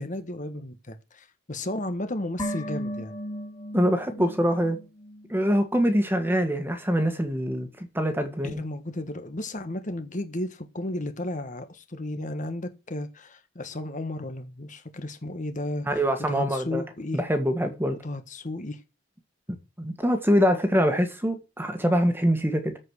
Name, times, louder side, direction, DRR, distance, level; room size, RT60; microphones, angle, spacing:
voice 1, 0.0-3.1 8.4-17.2 18.0-18.8, left 1 dB, 40° left, 1.4 m, -34 dB
sound 1, 2.4-5.7 6.0-6.1, equal, 25° left, 3.4 m, -36 dB
voice 2, 3.7-4.8 5.3-8.6 15.8-16.8 17.1-18.0 19.5-22.8, equal, 10° right, 1.6 m, -24 dB
14.0 x 5.1 x 6.4 m
head